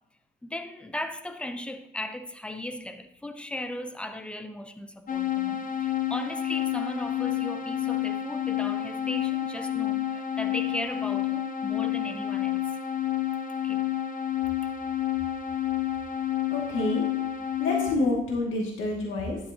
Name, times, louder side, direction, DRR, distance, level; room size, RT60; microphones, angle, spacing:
voice 1, 0.4-12.7 13.6-13.9, left 1 dB, 5° left, 0.8 m, -37 dB
sound 1, 5.1-18.0, left 12 dB, 45° left, 0.7 m, -29 dB
voice 2, 16.5-17.0 17.6-19.4, left 2 dB, 75° left, 2.3 m, -28 dB
11.5 x 7.6 x 2.9 m
cardioid pair, 90°, 20 cm